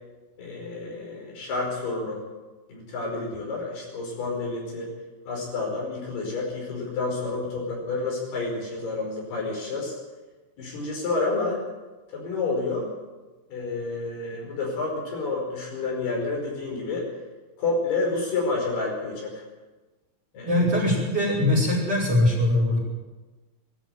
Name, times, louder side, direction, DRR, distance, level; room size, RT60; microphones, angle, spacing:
voice 1, 0.4-2.2 2.7-4.9 5.3-9.9 10.6-11.6 12.1-12.9 13.5-17.1 17.6-19.4 20.3-20.6, left 3 dB, 50° left, -1 dB, 6.9 m, -29 dB
voice 2, 20.5-22.8, left 1 dB, 30° right, -3 dB, 6.2 m, -21 dB
20.5 x 13.5 x 9.3 m, 1.2 s
omnidirectional pair, 6.0 m